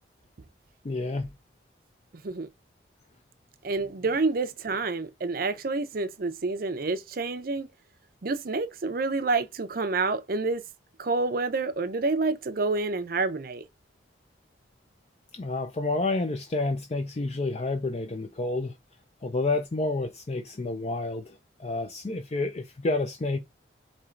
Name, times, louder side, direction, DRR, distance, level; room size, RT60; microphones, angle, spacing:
voice 1, 0.8-1.3 15.3-18.7 19.2-23.4, left 2 dB, 35° left, 0.4 m, -29 dB
voice 2, 3.6-7.7 8.2-10.6 11.0-13.6, right 3 dB, 50° right, 0.6 m, -28 dB
4.4 x 3.0 x 3.7 m
head